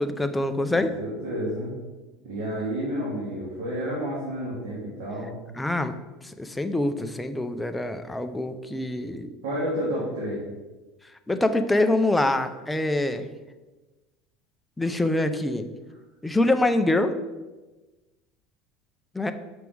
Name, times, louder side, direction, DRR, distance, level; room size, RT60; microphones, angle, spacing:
voice 1, 0.0-1.0 5.6-5.9 6.2-9.3 11.3-13.3 14.8-15.7 16.2-17.1 19.1-19.3, left 2 dB, 5° left, 8 dB, 0.4 m, -25 dB
voice 2, 0.8-1.7 2.2-5.3 9.4-10.4, equal, 90° right, -6 dB, 2.0 m, -30 dB
6.1 x 5.3 x 4.6 m, 1.2 s
cardioid pair, 155°, 0 cm